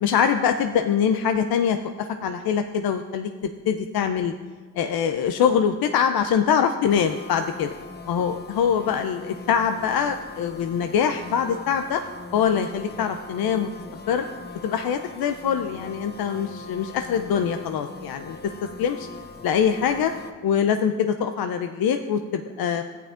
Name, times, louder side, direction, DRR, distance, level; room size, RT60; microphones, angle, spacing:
voice 1, 0.0-4.3 4.8-7.7 8.1-12.0 12.3-13.7 14.1-14.2 14.6-18.4 18.8-19.1 19.4-20.1 20.4-22.8, left 7 dB, 65° left, 7 dB, 0.6 m, -23 dB
sound 1, 6.9-20.3, left 3 dB, 25° left, 0.8 m, -41 dB
13.5 x 9.0 x 2.5 m, 1.5 s
supercardioid pair, 45°, 39 cm